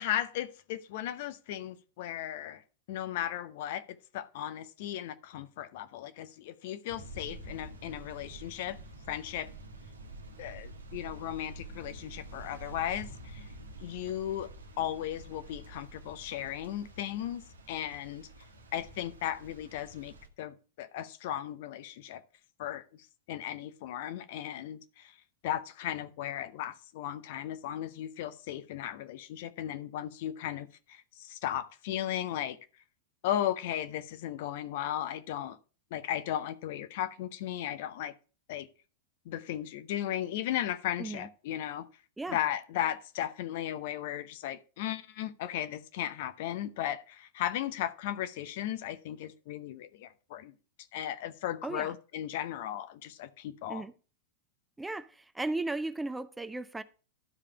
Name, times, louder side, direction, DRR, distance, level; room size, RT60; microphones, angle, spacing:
voice 1, 0.0-2.6 2.9-8.8 9.1-9.5 10.4-13.4 13.8-14.5 14.8-18.3 18.7-22.2 22.6-25.1 25.4-32.6 33.2-35.6 35.9-38.1 38.5-38.7 39.3-41.9 42.3-50.5 50.9-53.9, left 11 dB, 50° left, 0.7 m, -36 dB
sound 1, 6.9-20.3, right 1 dB, 75° right, 1.2 m, -48 dB
voice 2, 51.6-51.9 53.7-53.9 54.8-56.8, right 2 dB, 10° right, 0.5 m, -36 dB
12.0 x 4.9 x 4.3 m
figure-of-eight pair, 90°, 0 cm